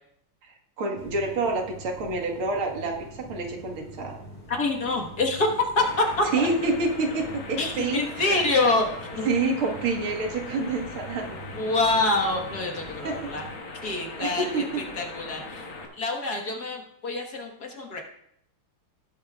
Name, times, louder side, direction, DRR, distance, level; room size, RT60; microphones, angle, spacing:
voice 1, 0.4-3.0 3.3-4.2 6.3-8.4 9.2-11.3 13.0-13.3 13.8-14.8, right 3 dB, 85° right, 1 dB, 2.5 m, -28 dB
sound 1, 0.9-13.6, equal, 20° left, 2.6 m, -45 dB
voice 2, 4.5-6.5 7.6-8.9 9.2-9.3 11.5-13.5 13.8-14.6 15.0-15.7 15.9-18.0, left 2 dB, 50° left, 2 dB, 1.9 m, -26 dB
sound 2, 5.8-15.9, left 3 dB, 70° left, 2.3 m, -40 dB
18.0 x 8.7 x 2.4 m, 0.71 s
omnidirectional pair, 2.3 m